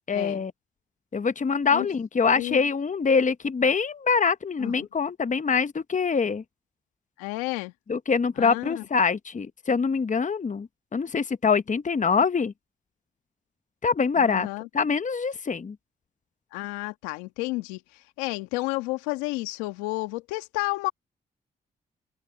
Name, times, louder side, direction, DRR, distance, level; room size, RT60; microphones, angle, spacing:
voice 1, 0.1-0.5 1.1-6.4 7.9-12.5 13.8-14.5 14.7-15.8, left 5 dB, 35° left, 1.1 m, -24 dB
voice 2, 7.2-7.7 8.4-8.8 14.2-14.7 16.5-17.8 18.2-20.9, left 21 dB, 85° left, 1.8 m, -31 dB
open air
hypercardioid pair, 40°, 21 cm